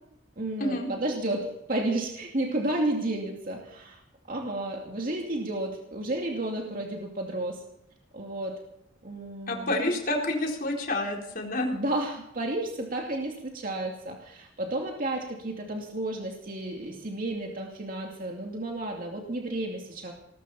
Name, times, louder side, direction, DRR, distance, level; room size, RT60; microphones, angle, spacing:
voice 1, 0.4-4.0 4.3-7.6 8.1-8.6 9.0-9.8 11.7-20.1, right 1 dB, 45° right, 0 dB, 2.5 m, -32 dB
voice 2, 9.5-11.8, left 1 dB, 50° left, 0 dB, 4.3 m, -28 dB
19.5 x 14.5 x 4.3 m, 0.76 s
head